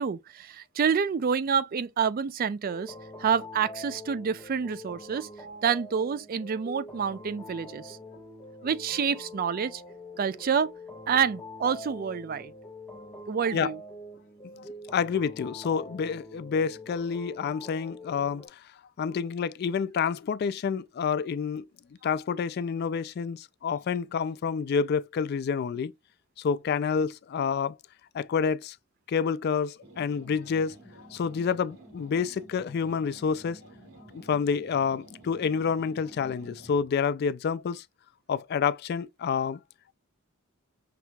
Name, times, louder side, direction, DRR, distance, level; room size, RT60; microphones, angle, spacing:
voice 1, 0.0-5.3 5.6-8.0 8.6-9.8 10.2-10.7 11.1-12.5 13.3-13.8, right 6 dB, 45° right, 0.3 m, -28 dB
sound 1, 2.6-18.5, left 1 dB, 5° left, 1.1 m, -45 dB
voice 2, 14.6-18.6 19.0-21.7 22.0-25.9 26.4-27.8 28.1-28.8 29.1-33.6 34.1-37.8 38.3-39.6, left 6 dB, 50° left, 0.3 m, -28 dB
sound 2, 29.8-36.9, right 1 dB, 85° right, 2.8 m, -51 dB
5.8 x 2.9 x 2.2 m
head